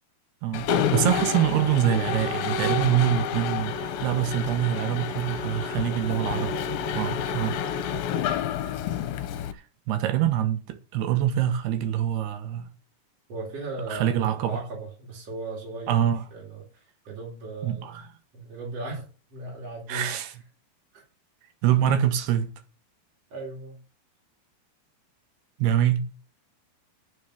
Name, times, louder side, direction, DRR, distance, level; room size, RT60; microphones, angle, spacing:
voice 1, 0.4-6.5 6.9-7.6 9.5-12.7 13.9-14.6 15.9-16.2 17.6-18.0 19.9-20.3 21.6-22.5 25.6-26.1, right 11 dB, 85° right, 3.3 m, -25 dB
Mechanisms, 0.5-9.5, left 7 dB, 70° left, 2.6 m, -29 dB
voice 2, 13.3-18.0 18.3-20.1 20.9-21.0 23.3-23.8, right 2 dB, 40° right, 4.7 m, -37 dB
10.0 x 7.0 x 7.9 m
omnidirectional pair, 4.6 m